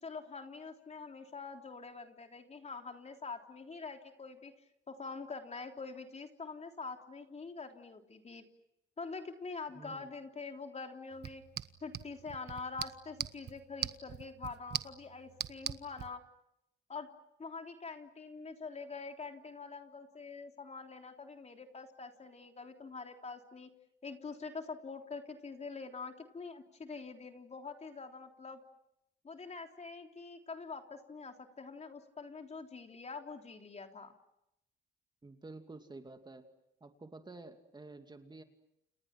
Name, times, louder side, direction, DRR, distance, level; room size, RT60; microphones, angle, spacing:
voice 1, 0.0-4.5 4.9-8.4 9.0-11.4 11.8-16.2 16.9-17.1 17.4-23.7 24.0-28.6 29.2-34.1, left 4 dB, 35° left, 4 dB, 3.5 m, -45 dB
voice 2, 9.7-10.1 35.2-36.5 36.8-38.4, right 3 dB, 20° right, 6 dB, 2.7 m, -50 dB
sound 1, 11.1-16.1, right 9 dB, 60° right, 1.3 m, -42 dB
29.5 x 29.5 x 6.1 m, 0.82 s
cardioid pair, 90°, 20 cm